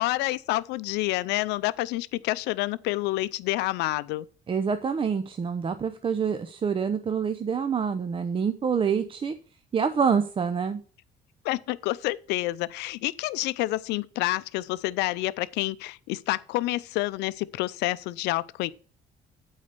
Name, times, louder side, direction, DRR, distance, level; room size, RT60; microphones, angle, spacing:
voice 1, 0.0-4.3 11.4-18.7, left 18 dB, 90° left, 0.5 m, -28 dB
voice 2, 4.5-9.4 9.7-10.8, right 6 dB, 30° right, 0.7 m, -26 dB
8.5 x 4.1 x 6.8 m
cardioid pair, 110°, 17 cm